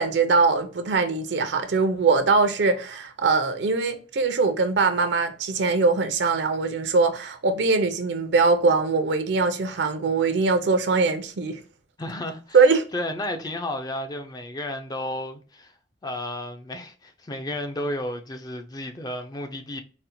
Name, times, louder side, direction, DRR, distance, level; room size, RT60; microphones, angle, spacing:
voice 1, 0.0-11.6 12.5-12.8, right 4 dB, 70° right, 0.5 m, -22 dB
voice 2, 12.0-12.6 12.9-15.7 16.0-19.8, left 1 dB, 20° left, 0.4 m, -32 dB
4.2 x 2.1 x 2.6 m
head